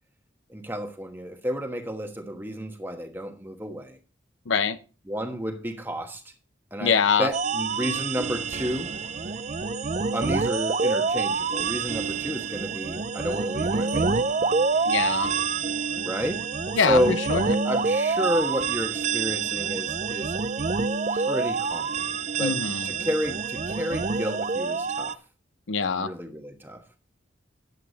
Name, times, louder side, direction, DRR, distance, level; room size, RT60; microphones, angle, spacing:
voice 1, 0.5-4.0 5.1-6.3 6.7-6.9 7.2-8.9 10.1-14.7 16.0-16.4 16.8-17.2 17.6-20.4 21.1-22.0 22.4-22.5 22.8-25.2 25.9-26.8, equal, 10° right, 1.3 m, -31 dB
voice 2, 4.5-4.8 6.8-7.3 14.8-15.3 16.8-17.6 22.4-22.9 25.7-26.1, left 6 dB, 85° left, 0.8 m, -24 dB
sound 1, 7.3-25.1, right 4 dB, 35° right, 0.4 m, -27 dB
11.0 x 8.1 x 4.0 m
head